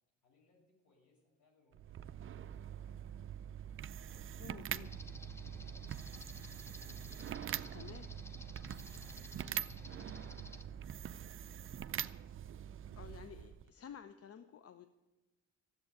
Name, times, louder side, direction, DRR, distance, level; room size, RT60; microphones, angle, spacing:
voice 1, 0.2-3.1 4.0-6.6 7.2-9.7 10.5-11.8 12.7-12.9, left 3 dB, 75° left, 0 dB, 6.5 m, -74 dB
sound 1, 1.7-13.7, right 9 dB, 45° right, 0.5 m, -44 dB
voice 2, 4.4-4.9 7.7-8.1 13.0-14.9, left 8 dB, 50° left, 9 dB, 0.8 m, -52 dB
sound 2, 4.8-10.6, left 2 dB, 10° left, 0.9 m, -54 dB
13.5 x 8.0 x 9.5 m, 1.1 s
cardioid pair, 90°, 30 cm